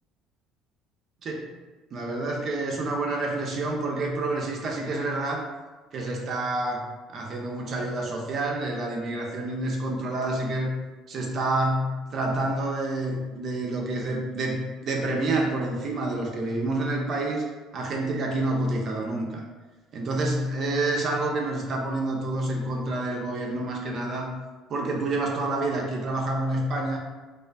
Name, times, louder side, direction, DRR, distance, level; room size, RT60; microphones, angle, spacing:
voice 1, 1.9-5.4 5.9-6.8 7.1-10.8 11.1-17.5 17.7-19.4 19.9-24.3 24.7-27.0, right 2 dB, 50° right, 0 dB, 0.5 m, -28 dB
2.4 x 2.3 x 2.2 m, 1.2 s
supercardioid pair, 85°, 0 cm